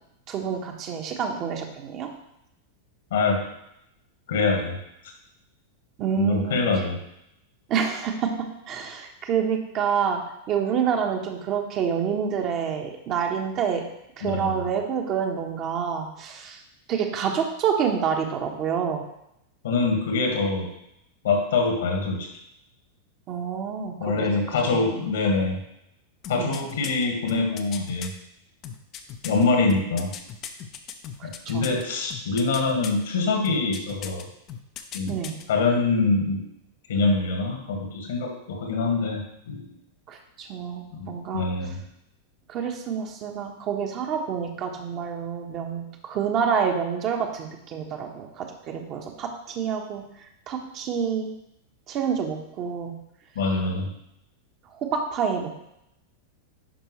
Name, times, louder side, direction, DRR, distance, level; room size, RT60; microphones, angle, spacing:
voice 1, 0.3-2.1 6.0-6.6 7.7-8.3 8.7-10.2 10.5-13.8 14.2-16.6 16.9-19.0 23.3-25.0 26.3-26.5 31.2-31.3 31.5-31.7 35.1-35.3 40.1-41.5 42.5-50.0 50.5-51.3 51.9-52.9 54.9-55.5, right 7 dB, 35° right, 2 dB, 1.2 m, -28 dB
voice 2, 3.1-3.4 4.3-4.8 6.1-7.0 14.2-14.7 19.6-20.7 21.2-22.3 24.0-25.6 26.3-28.1 29.2-30.1 31.2-34.2 34.9-35.1 35.5-36.4 36.9-39.7 40.9-41.8 53.3-53.9, left 3 dB, 60° left, 2 dB, 1.7 m, -24 dB
sound 1, 26.2-28.1 28.6-31.8 32.1-33.0 33.4-34.2 34.5-35.4 35.7-35.8, left 9 dB, 35° left, 0.7 m, -38 dB
10.5 x 5.5 x 3.1 m, 0.81 s
figure-of-eight pair, 90°, 0 cm